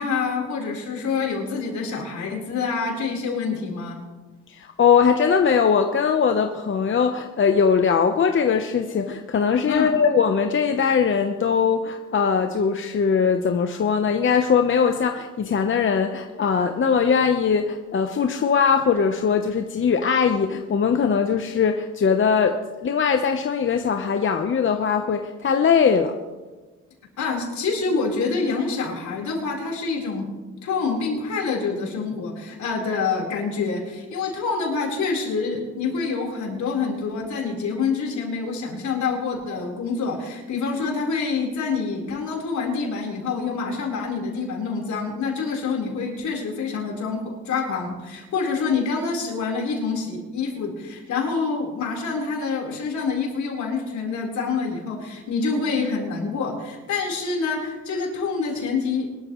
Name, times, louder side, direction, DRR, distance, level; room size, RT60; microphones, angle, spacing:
voice 1, 0.0-4.0 9.7-9.9 27.2-30.3 30.6-59.2, left 4 dB, 70° left, 0 dB, 4.2 m, -26 dB
voice 2, 4.5-26.2, left 6 dB, 40° left, 6 dB, 0.9 m, -21 dB
22.5 x 13.0 x 3.1 m, 1.2 s
cardioid pair, 90°, 30 cm